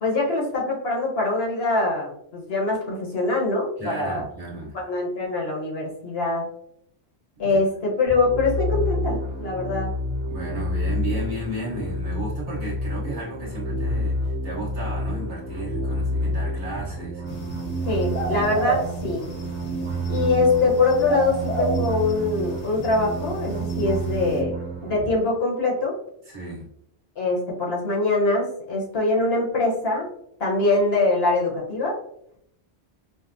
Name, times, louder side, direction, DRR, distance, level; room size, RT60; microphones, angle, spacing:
voice 1, 0.0-4.2 4.7-6.4 7.4-9.9 17.9-19.2 20.1-26.0 27.2-30.1 30.4-32.0, left 3 dB, 65° left, -2 dB, 1.2 m, -23 dB
voice 2, 3.8-4.8 7.4-7.6 10.3-17.5 26.2-26.7, right 1 dB, 45° right, -6 dB, 1.3 m, -34 dB
sound 1, 8.1-25.1, right 1 dB, 85° right, 1.2 m, -29 dB
sound 2, 17.3-24.4, right 1 dB, 45° left, 0.6 m, -33 dB
5.2 x 2.0 x 2.5 m, 0.71 s
omnidirectional pair, 1.1 m